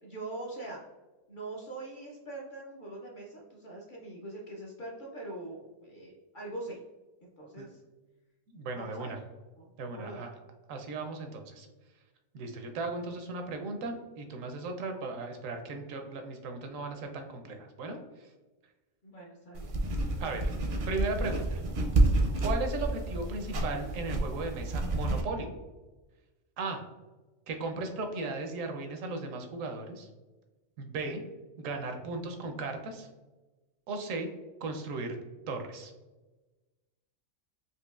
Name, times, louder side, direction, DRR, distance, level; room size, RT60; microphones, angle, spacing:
voice 1, 0.0-0.8 1.3-6.8 7.2-7.8 8.7-9.2 9.6-10.3 19.0-19.8, right 2 dB, 55° left, -2 dB, 0.6 m, -43 dB
voice 2, 8.5-9.2 9.8-10.3 10.7-11.7 12.3-18.3 20.2-20.5 20.9-21.6 22.4-25.5 26.6-26.8 27.5-30.1 30.8-31.2 31.6-33.1 33.9-34.3 34.6-35.2 35.5-35.9, right 3 dB, 80° right, 5 dB, 1.0 m, -36 dB
sound 1, 19.5-25.2, right 2 dB, 60° right, 0.6 m, -29 dB
4.4 x 2.6 x 2.3 m, 1.2 s
omnidirectional pair, 1.3 m